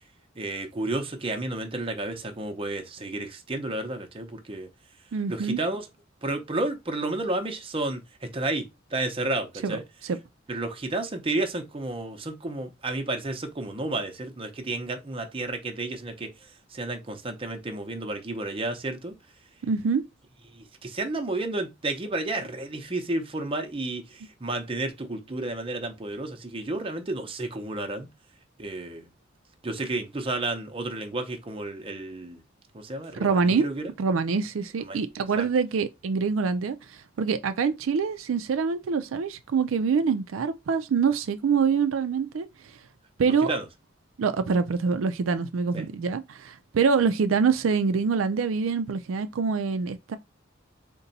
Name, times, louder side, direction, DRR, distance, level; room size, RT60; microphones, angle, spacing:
voice 1, 0.4-4.7 5.3-5.9 6.2-9.8 10.5-16.3 16.7-19.1 20.5-28.1 28.6-29.1 29.6-32.4 32.7-33.9 34.9-35.0 35.4-35.5 43.4-43.6 45.7-45.8, right 2 dB, 30° right, 0.6 m, -31 dB
voice 2, 5.1-5.6 9.6-10.2 19.6-20.0 33.1-33.7 34.0-42.5 43.2-43.6 44.2-50.2, right 5 dB, 90° right, 0.4 m, -25 dB
3.9 x 2.2 x 4.0 m
head